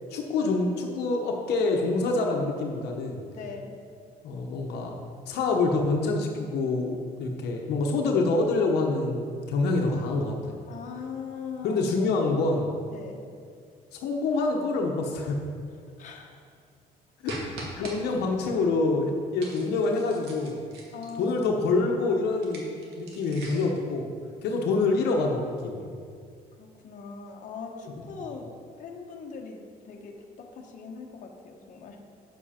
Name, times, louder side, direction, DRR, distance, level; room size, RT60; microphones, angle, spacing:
voice 1, 0.1-3.2 4.2-5.0 5.3-10.6 11.6-12.7 13.9-15.4 17.2-17.3 17.8-20.6 21.2-22.6 23.0-24.1 24.4-25.9 27.9-28.0, left 3 dB, 75° left, 1 dB, 1.0 m, -26 dB
voice 2, 3.3-3.7 10.7-11.8 12.9-13.2 16.0-16.4 17.8-18.0 20.9-21.5 26.6-28.5 28.8-32.0, left 5 dB, 50° left, 1 dB, 1.1 m, -40 dB
sound 1, 17.3-18.0 19.4-21.3 22.3-23.8, right 2 dB, 80° right, 1.9 m, -42 dB
8.1 x 7.3 x 4.3 m, 2.2 s
cardioid pair, 110°, 17 cm